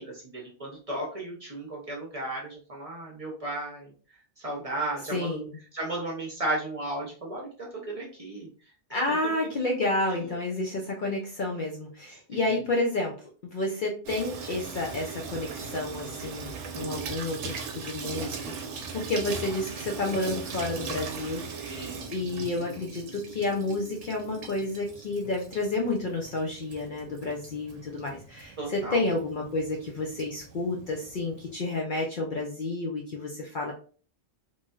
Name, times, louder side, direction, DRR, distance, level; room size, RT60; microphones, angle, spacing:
voice 1, 0.0-3.9 4.4-5.5 5.7-7.5 7.9-8.5 8.9-9.3 10.1-10.3 12.3-12.6 21.7-22.8 28.6-29.0, right 2 dB, 35° right, -2 dB, 0.7 m, -35 dB
voice 2, 5.1-5.6 8.9-13.1 13.4-33.7, left 2 dB, 55° left, -1 dB, 0.6 m, -30 dB
Water tap faucet / Sink (filling or washing), 14.1-31.5, right 5 dB, 80° right, 0.9 m, -39 dB
3.0 x 2.7 x 2.3 m, 0.40 s
omnidirectional pair, 1.2 m